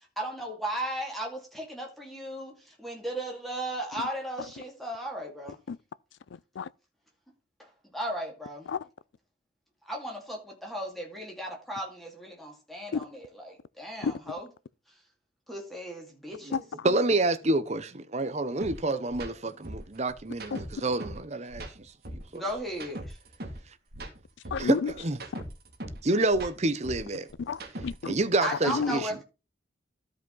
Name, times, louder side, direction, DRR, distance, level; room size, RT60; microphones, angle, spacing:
voice 1, 0.2-5.6 7.6-7.7 7.9-8.7 9.9-14.5 15.5-16.6 22.3-23.2 28.4-29.2, right 1 dB, ahead, 2.4 m, -36 dB
voice 2, 16.8-21.7 22.3-22.4 24.6-25.2 26.0-27.3 28.1-29.1, right 2 dB, 35° right, 0.7 m, -28 dB
sound 1, 18.6-18.7 19.1-19.3 19.6-21.2 21.5-23.6 23.9-26.0 26.3-28.1, right 1 dB, 55° right, 2.0 m, -40 dB
voice 3, 24.5-24.9 25.3-25.4 27.4-28.2 28.7-29.0, left 5 dB, 80° left, 0.4 m, -31 dB
13.0 x 5.0 x 3.9 m
head